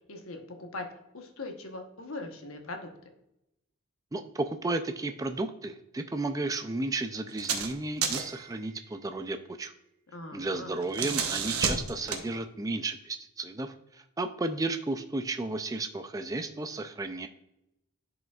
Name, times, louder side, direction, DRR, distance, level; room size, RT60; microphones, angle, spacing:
voice 1, 0.1-0.9 1.1-2.9 10.1-10.7, left 2 dB, 65° left, 4 dB, 1.1 m, -40 dB
voice 2, 4.1-9.7 10.3-17.3, right 2 dB, 15° right, 7 dB, 0.3 m, -33 dB
sound 1, 7.3-7.7 8.0-8.4 10.7-12.3, right 6 dB, 75° right, 1.0 m, -30 dB
11.0 x 5.0 x 2.4 m, 0.85 s
head